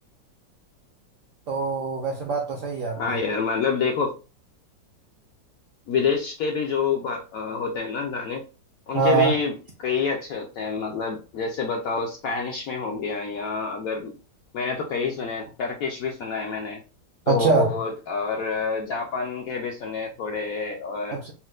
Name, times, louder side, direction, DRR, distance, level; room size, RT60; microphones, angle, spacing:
voice 1, 1.5-3.2 8.9-9.4 17.3-17.7 21.1-21.3, right 5 dB, 70° right, 0.7 m, -23 dB
voice 2, 3.0-4.2 5.9-8.4 8.9-14.1 14.5-16.8 17.3-21.3, left 5 dB, 70° left, 0.8 m, -27 dB
4.2 x 2.1 x 2.3 m
omnidirectional pair, 2.0 m